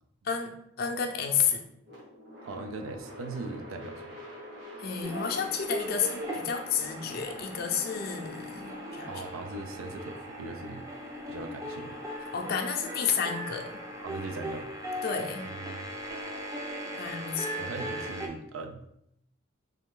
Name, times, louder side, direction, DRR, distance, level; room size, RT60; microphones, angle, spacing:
voice 1, 0.8-1.6 4.8-9.1 12.3-13.8 15.0-15.5 16.9-17.5, left 6 dB, 50° left, 2 dB, 0.5 m, -31 dB
sound 1, 1.8-14.0, equal, 55° right, 1.3 m, -48 dB
voice 2, 2.4-4.2 7.0-7.2 9.1-10.9 11.3-12.0 14.0-14.7 15.4-15.9 17.5-18.8, right 3 dB, 85° right, 6 dB, 0.4 m, -40 dB
sound 2, 5.0-18.3, equal, 15° right, 0.5 m, -39 dB
3.4 x 3.1 x 3.7 m, 0.76 s
head